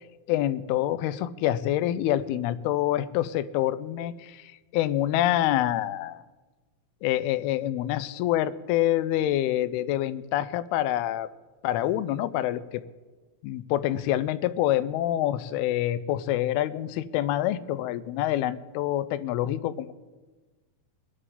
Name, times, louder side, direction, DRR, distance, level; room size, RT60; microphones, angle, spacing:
voice 1, 0.3-6.2 7.0-11.3 11.6-12.8 13.4-19.9, left 13 dB, 90° left, 14 dB, 2.6 m, -26 dB
22.5 x 10.5 x 3.8 m, 1.3 s
omnidirectional pair, 4.4 m